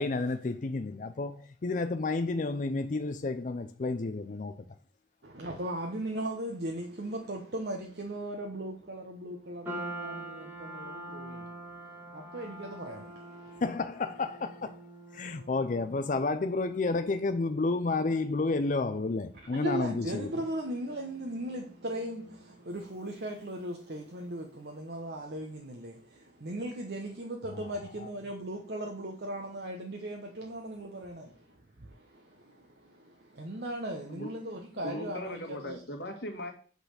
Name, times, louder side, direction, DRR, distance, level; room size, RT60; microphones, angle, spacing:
voice 1, 0.0-4.5 13.6-14.7 15.1-20.3, left 3 dB, 45° left, 0.4 m, -31 dB
voice 2, 5.2-13.6 19.3-35.8, right 1 dB, 65° right, 1.0 m, -38 dB
sound 1, 9.6-24.1, right 1 dB, 10° right, 1.7 m, -47 dB
voice 3, 34.8-36.5, left 1 dB, 70° left, 1.9 m, -38 dB
8.2 x 4.1 x 6.5 m
head